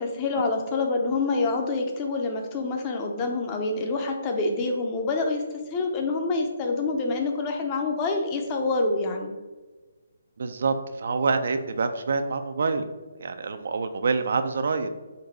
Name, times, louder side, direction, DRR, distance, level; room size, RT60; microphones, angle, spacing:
voice 1, 0.0-5.4 5.7-9.3, left 3 dB, 25° left, 3 dB, 0.6 m, -26 dB
voice 2, 10.4-12.9 13.2-14.9, right 4 dB, 65° right, 8 dB, 0.4 m, -26 dB
3.9 x 2.6 x 4.5 m, 1.2 s
hypercardioid pair, 150°, 0 cm